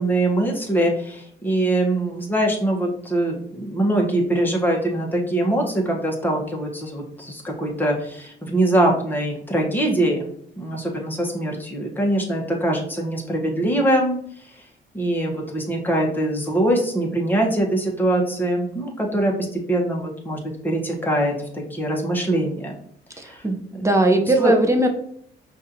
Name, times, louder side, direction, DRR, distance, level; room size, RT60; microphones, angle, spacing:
voice 1, 0.0-10.3 10.6-14.2 14.9-22.8 23.2-23.4 23.7-23.8 24.4-24.5, right 1 dB, 10° left, -1 dB, 1.1 m, -23 dB
voice 2, 23.2-24.9, right 1 dB, 15° right, 4 dB, 0.7 m, -19 dB
5.3 x 2.6 x 2.7 m, 0.64 s
cardioid pair, 90°, 20 cm